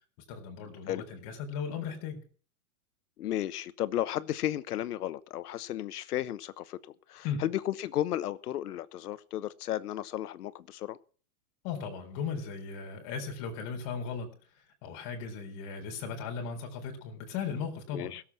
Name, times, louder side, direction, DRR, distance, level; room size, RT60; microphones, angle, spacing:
voice 1, 0.3-2.3 7.2-7.5 11.6-14.3 14.8-18.1, left 6 dB, 45° left, 4.1 m, -37 dB
voice 2, 3.2-11.0 17.9-18.2, left 12 dB, 90° left, 1.1 m, -34 dB
17.0 x 7.5 x 7.4 m
supercardioid pair, 140°, 45 cm